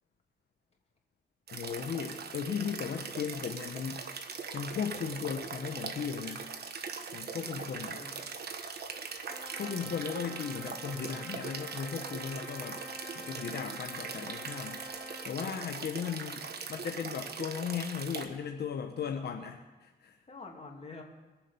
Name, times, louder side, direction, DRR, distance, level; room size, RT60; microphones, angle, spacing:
voice 1, 1.5-4.0 4.5-6.5 7.1-8.0 9.6-12.8 13.1-14.8 15.2-16.4 16.7-20.2, left 7 dB, 70° left, 4 dB, 1.0 m, -36 dB
sound 1, 1.5-18.3, right 5 dB, 65° right, 1.3 m, -41 dB
voice 2, 7.4-8.3 15.4-16.4 20.3-21.0, left 3 dB, 35° left, 0 dB, 2.8 m, -49 dB
Trumpet, 9.3-15.3, equal, 5° left, 3.6 m, -48 dB
22.0 x 7.4 x 5.3 m, 1.2 s
cardioid pair, 80°, 17 cm